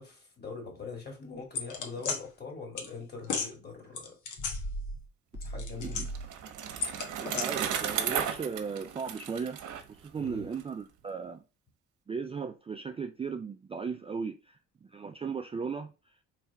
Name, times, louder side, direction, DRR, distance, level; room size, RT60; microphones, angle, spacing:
voice 1, 0.0-4.1 5.4-6.0 10.2-10.5, left 4 dB, 30° left, 2.2 m, -43 dB
sound 1, 1.5-2.2 2.8-2.9 3.2-3.5 4.0-5.1 5.3-6.3 6.8-7.4, left 3 dB, 75° left, 1.3 m, -34 dB
Bicycle, 5.5-10.6, right 8 dB, 75° right, 0.8 m, -35 dB
voice 2, 7.2-11.4 12.1-16.2, right 5 dB, 20° right, 0.3 m, -37 dB
3.2 x 3.2 x 4.6 m
cardioid pair, 90°, 30 cm